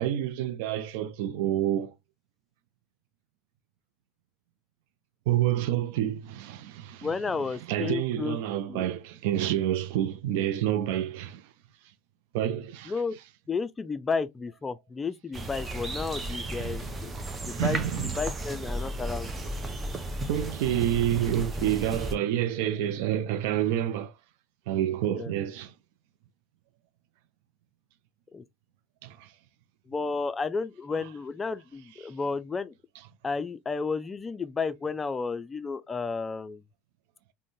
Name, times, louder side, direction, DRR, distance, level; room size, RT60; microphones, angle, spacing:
voice 1, 0.0-1.9 5.3-7.1 7.7-11.4 12.3-12.9 16.5-16.7 17.5-18.1 20.3-24.1 24.7-25.7 29.0-29.3, right 12 dB, 70° right, 0.4 m, -28 dB
voice 2, 7.0-8.4 8.7-8.9 12.9-13.2 13.5-17.1 17.5-19.3 25.1-25.3 28.3-28.4 29.9-32.7 33.2-36.6, left 4 dB, 20° left, 0.4 m, -32 dB
sound 1, 15.3-22.2, right 1 dB, 25° right, 0.6 m, -34 dB
3.6 x 2.1 x 2.6 m
hypercardioid pair, 80°, 0 cm